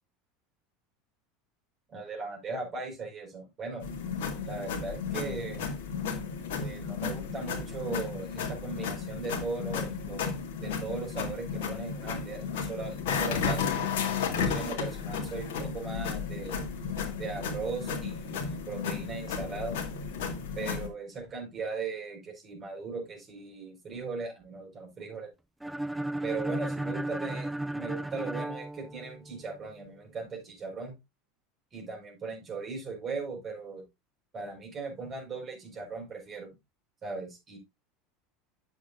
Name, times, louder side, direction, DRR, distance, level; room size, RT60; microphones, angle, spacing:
voice 1, 1.9-3.9 4.4-5.7 6.6-10.3 10.6-13.6 14.3-16.7 17.2-19.8 20.5-25.3 26.2-27.5 27.7-30.9 31.7-33.8 34.3-36.5 37.0-37.6, right 4 dB, 35° right, 1 dB, 4.7 m, -38 dB
sound 1, 3.8-20.9, left 6 dB, 65° left, 2.0 m, -33 dB
sound 2, 25.6-29.5, right 1 dB, 5° right, 0.3 m, -34 dB
9.5 x 7.2 x 2.6 m, 0.23 s
figure-of-eight pair, 75°, 0 cm